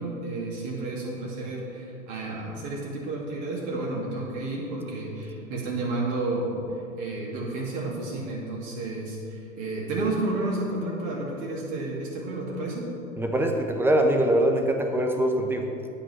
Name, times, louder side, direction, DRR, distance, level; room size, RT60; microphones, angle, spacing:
voice 1, 0.0-6.6 7.0-12.9, right 2 dB, 45° right, -4 dB, 2.5 m, -31 dB
voice 2, 13.2-15.7, right 1 dB, 5° right, 3 dB, 0.7 m, -23 dB
8.8 x 7.5 x 5.6 m, 2.7 s
hypercardioid pair, 105°, 41 cm